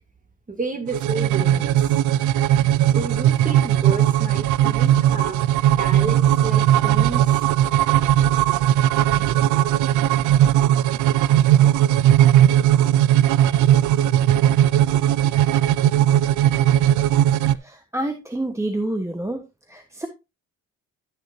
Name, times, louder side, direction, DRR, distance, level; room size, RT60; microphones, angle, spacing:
voice 1, 0.5-1.9 2.9-5.4 5.8-7.4, right 3 dB, 25° right, 2.7 m, -31 dB
sound 1, 0.9-17.6, right 12 dB, 80° right, 0.5 m, -18 dB
voice 2, 17.6-19.4 19.7-20.1, right 1 dB, 10° right, 1.2 m, -28 dB
12.5 x 6.5 x 2.7 m
cardioid pair, 90°, 30 cm